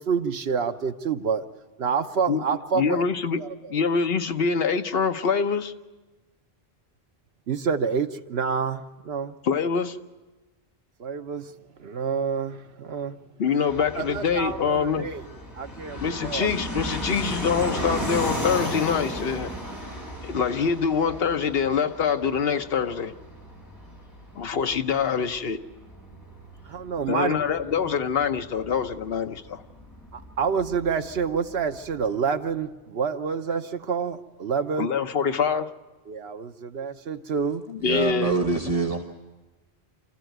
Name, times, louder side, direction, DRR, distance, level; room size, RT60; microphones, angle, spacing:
voice 1, 0.0-1.4 1.8-3.1 3.4-3.7 7.5-9.3 11.0-11.5 11.8-13.2 13.4-13.6 13.9-16.6 26.7-27.9 30.1-34.9 36.1-37.7, right 6 dB, 75° right, 1.2 m, -28 dB
voice 2, 2.7-3.4 3.7-5.7 9.4-10.0 13.4-15.1 16.0-19.5 20.2-23.1 24.3-25.6 27.1-29.6 34.8-35.7 37.7-38.3, left 6 dB, 65° left, 1.1 m, -25 dB
Fixed-wing aircraft airplane, 13.6-32.0, equal, 20° left, 4.9 m, -36 dB
voice 3, 37.8-39.0, right 3 dB, 35° right, 1.2 m, -25 dB
26.0 x 14.5 x 9.2 m
omnidirectional pair, 1.1 m